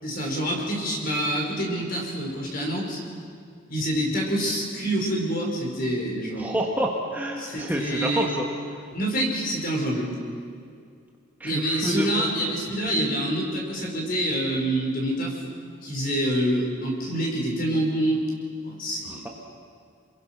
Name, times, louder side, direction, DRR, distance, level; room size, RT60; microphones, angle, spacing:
voice 1, 0.0-3.0 3.7-6.5 7.4-8.3 8.9-10.1 11.4-15.4 15.8-18.2 18.6-19.3, right 1 dB, 40° left, -1 dB, 5.3 m, -26 dB
voice 2, 6.4-8.5 11.4-12.3 19.0-19.3, equal, 10° right, -1 dB, 1.5 m, -28 dB
29.0 x 21.5 x 6.1 m, 2.3 s
head